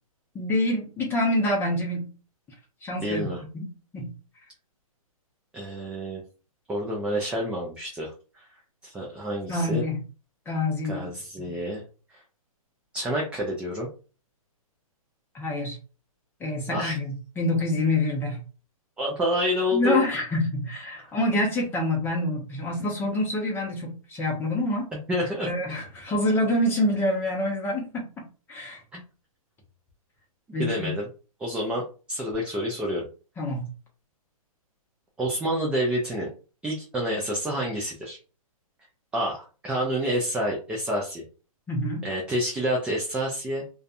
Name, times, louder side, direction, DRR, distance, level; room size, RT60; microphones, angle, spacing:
voice 1, 0.3-2.1 2.8-3.2 3.5-4.1 9.5-10.0 10.5-11.1 11.4-11.6 15.3-15.8 16.4-18.4 19.7-24.9 25.4-28.8 30.5-30.9 33.4-33.7 41.7-42.0, left 1 dB, 10° left, 0 dB, 0.8 m, -26 dB
voice 2, 3.0-3.4 5.5-6.2 6.7-8.5 8.8-9.8 10.9-11.8 12.1-12.2 12.9-13.9 16.7-17.0 19.0-20.0 25.1-25.5 28.9-29.0 30.6-31.1 31.4-31.8 32.1-33.1 35.2-36.3 36.6-38.2 39.1-41.2 42.0-43.6, equal, 5° right, -2 dB, 0.3 m, -28 dB
2.5 x 2.3 x 2.4 m, 0.35 s
hypercardioid pair, 140°, 19 cm